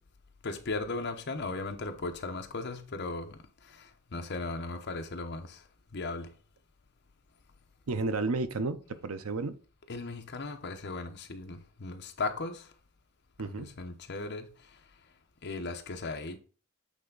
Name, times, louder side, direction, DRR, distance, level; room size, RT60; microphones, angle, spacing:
voice 1, 0.4-3.4 3.7-5.6 5.9-6.3 9.9-12.7 13.4-14.5 15.4-16.4, left 3 dB, 55° left, 0.8 m, -37 dB
voice 2, 7.9-9.5 13.4-13.7, right 3 dB, 80° right, 0.6 m, -32 dB
8.3 x 3.4 x 3.9 m
head